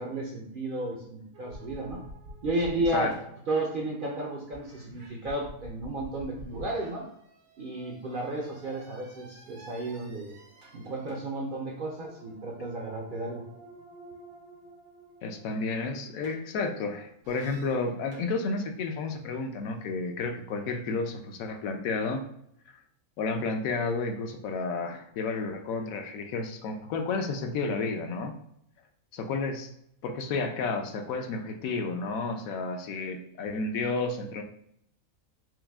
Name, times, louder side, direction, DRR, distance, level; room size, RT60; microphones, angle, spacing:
voice 1, 0.0-2.0 2.4-3.1 3.5-7.1 7.6-10.3 10.7-13.4, right 2 dB, 65° right, -1 dB, 0.5 m, -33 dB
sound 1, 1.3-4.0 4.5-16.8 17.2-18.3, right 1 dB, 90° right, 1.5 m, -49 dB
voice 2, 15.2-22.2 23.2-28.3 29.1-29.7 30.0-34.4, left 3 dB, 75° left, 5 dB, 1.0 m, -31 dB
4.7 x 2.1 x 3.4 m, 0.73 s
omnidirectional pair, 1.5 m